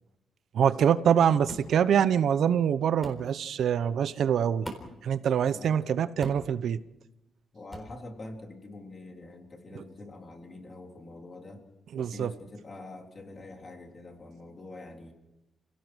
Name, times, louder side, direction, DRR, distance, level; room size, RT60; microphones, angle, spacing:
voice 1, 0.5-4.7 5.0-6.8 11.9-12.3, right 8 dB, 65° right, 0.8 m, -24 dB
sound 1, 1.5-1.7 3.0-3.2 4.6-5.0 6.2-6.5 7.7-7.9, right 1 dB, ahead, 3.9 m, -40 dB
voice 2, 5.5-5.9 7.5-11.6 11.9-15.1, left 2 dB, 30° left, 3.4 m, -45 dB
30.0 x 17.0 x 6.3 m
cardioid pair, 145°, 0 cm